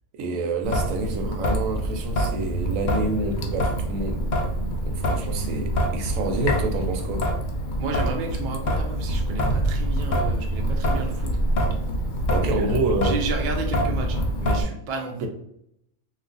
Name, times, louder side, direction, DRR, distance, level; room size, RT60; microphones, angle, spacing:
voice 1, 0.1-4.3 4.9-7.3 12.3-13.2 15.2-15.3, right 2 dB, 90° right, 1.0 m, -28 dB
Traffic noise roadway noise / Drip / Trickle dribble, 0.6-14.6, equal, 70° left, 0.4 m, -25 dB
voice 2, 7.8-11.3 12.4-12.7 13.0-15.3, right 3 dB, 55° right, 0.5 m, -32 dB
2.4 x 2.3 x 3.8 m
omnidirectional pair, 1.3 m